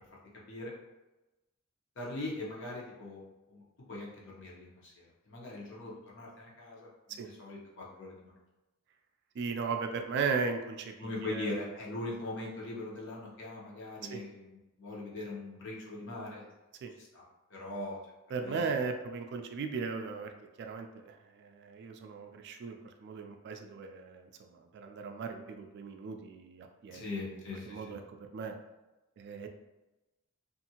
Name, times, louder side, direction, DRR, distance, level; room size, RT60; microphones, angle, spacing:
voice 1, 2.0-3.2 3.5-3.6 3.9-8.3 11.0-16.5 17.0-17.2 17.5-18.0 18.4-18.6 26.9-28.0, left 2 dB, 60° left, -4 dB, 0.8 m, -41 dB
voice 2, 9.4-11.5 14.1-14.2 16.8-16.9 18.3-20.3 20.6-28.5 29.2-29.5, right 5 dB, 55° right, 5 dB, 0.3 m, -37 dB
2.6 x 2.5 x 2.8 m, 1.0 s
head